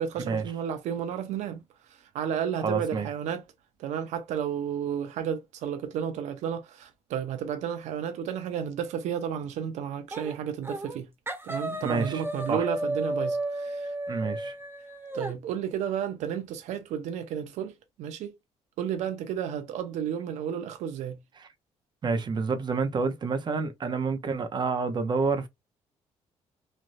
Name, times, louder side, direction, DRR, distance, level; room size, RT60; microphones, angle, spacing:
voice 1, 0.0-1.6 1.9-3.4 3.8-11.1 11.4-13.9 14.3-14.4 15.1-17.7 18.0-18.3 18.8-21.2, right 8 dB, 85° right, 0.6 m, -32 dB
voice 2, 2.6-3.1 11.8-12.1 12.5-12.7 14.1-14.5 22.0-25.5, right 4 dB, 40° right, 0.7 m, -28 dB
sound 1, 10.1-10.4 10.6-11.0 11.3-15.3, right 1 dB, 20° right, 1.2 m, -33 dB
3.2 x 2.5 x 2.5 m
cardioid pair, 105°, 12 cm